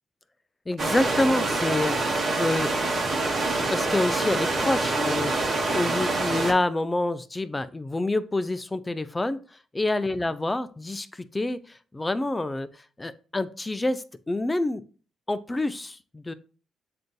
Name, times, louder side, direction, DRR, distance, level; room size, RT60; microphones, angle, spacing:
voice 1, 0.7-2.7 3.7-9.4 9.7-14.8 15.3-16.3, left 2 dB, 15° left, 13 dB, 0.4 m, -27 dB
sound 1, 0.8-6.5, right 2 dB, 50° right, 1.0 m, -26 dB
7.5 x 2.6 x 2.2 m, 0.38 s
cardioid pair, 90°, 0 cm